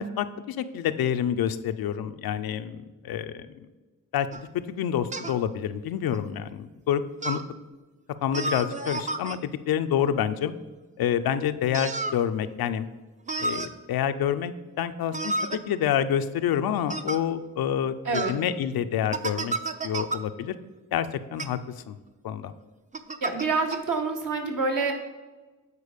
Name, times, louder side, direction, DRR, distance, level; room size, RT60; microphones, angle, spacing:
voice 1, 0.0-3.5 4.1-7.4 8.2-10.5 11.0-12.9 13.4-19.6 19.8-20.5 20.9-21.6 21.9-22.0 22.2-22.5, left 9 dB, 85° left, 11 dB, 0.5 m, -28 dB
sound 1, 4.3-4.5 5.1-5.4 6.1-6.2 7.2-7.5 8.3-9.4 11.7-12.2 13.3-13.7 15.1-15.6 16.9-17.2 18.1-18.4 19.1-20.2 21.3-21.5 22.9-23.5 23.7-23.8, right 3 dB, 20° right, 0.5 m, -31 dB
voice 2, 18.0-18.4 23.2-24.9, right 4 dB, 60° right, 2 dB, 1.4 m, -27 dB
8.3 x 4.5 x 5.1 m, 1.2 s
cardioid pair, 70°, 35 cm